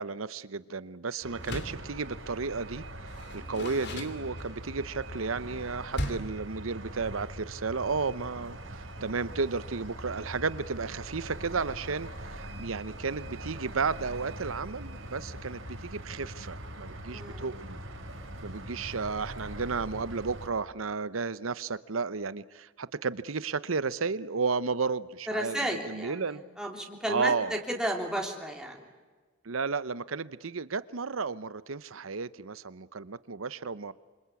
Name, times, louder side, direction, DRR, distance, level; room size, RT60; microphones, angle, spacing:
voice 1, 0.0-2.8 3.3-17.8 18.4-26.4 27.1-27.6 29.4-33.9, right 4 dB, 90° right, 17 dB, 0.9 m, -33 dB
sound 1, 1.2-20.5, right 1 dB, 70° right, 6.4 m, -42 dB
Door, 1.4-1.9 3.1-4.7 5.9-6.4, left 1 dB, 60° left, 2.8 m, -37 dB
voice 2, 17.1-17.5 25.3-28.8, right 1 dB, 5° right, 0 dB, 3.3 m, -33 dB
27.0 x 26.0 x 8.4 m, 1.4 s
head